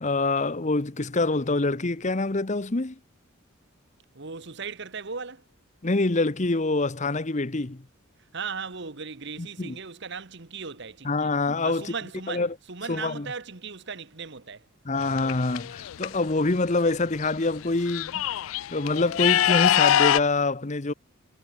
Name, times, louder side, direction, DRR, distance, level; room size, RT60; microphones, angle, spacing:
voice 1, 0.0-3.0 5.8-7.8 9.4-9.8 11.0-11.9 12.3-12.5 12.9-13.3 14.8-18.2 18.7-20.9, left 3 dB, 35° left, 1.0 m, -25 dB
voice 2, 4.1-5.4 8.3-11.3 11.6-14.7, right 5 dB, 55° right, 1.4 m, -37 dB
sound 1, 15.0-16.1 17.2-17.3 17.6-20.2, left 11 dB, 75° left, 0.4 m, -23 dB
head